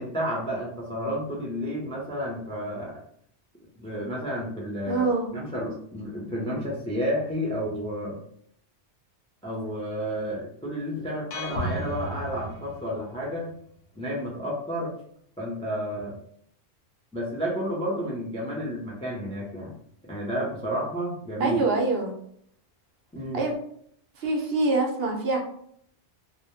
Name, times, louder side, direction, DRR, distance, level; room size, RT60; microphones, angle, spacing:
voice 1, 0.0-3.0 3.8-8.2 9.4-13.5 14.0-14.9 15.4-16.2 17.1-19.7 20.0-21.6 23.1-23.4, equal, 10° left, -4 dB, 0.3 m, -31 dB
voice 2, 4.9-5.3 21.4-22.1 23.3-23.5 24.2-25.4, right 3 dB, 70° right, 1 dB, 0.8 m, -24 dB
sound 1, 11.3-13.3, equal, 65° left, 0.8 m, -34 dB
2.1 x 2.0 x 2.9 m, 0.66 s
omnidirectional pair, 1.2 m